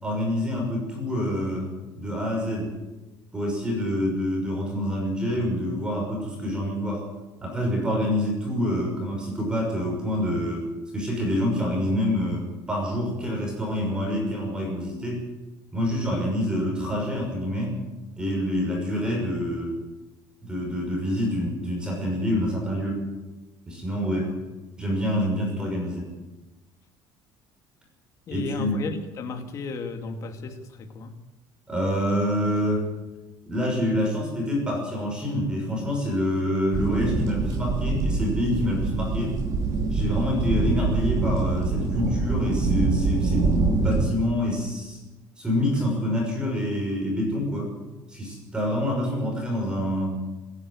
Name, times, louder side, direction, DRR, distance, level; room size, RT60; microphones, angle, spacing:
voice 1, 0.0-2.7 3.3-7.1 7.4-10.7 10.9-15.2 15.7-17.8 18.2-19.8 20.4-23.0 23.7-24.3 24.8-26.1 28.3-28.8 31.7-32.9 33.5-39.4 39.9-45.0 45.4-47.7 48.1-50.1, equal, 10° right, 0 dB, 6.0 m, -27 dB
voice 2, 28.3-31.1, left 4 dB, 35° left, 5 dB, 2.4 m, -34 dB
sound 1, 36.7-44.1, right 3 dB, 40° right, 2.4 m, -25 dB
26.5 x 11.0 x 9.8 m, 1.1 s
cardioid pair, 180°, 9 cm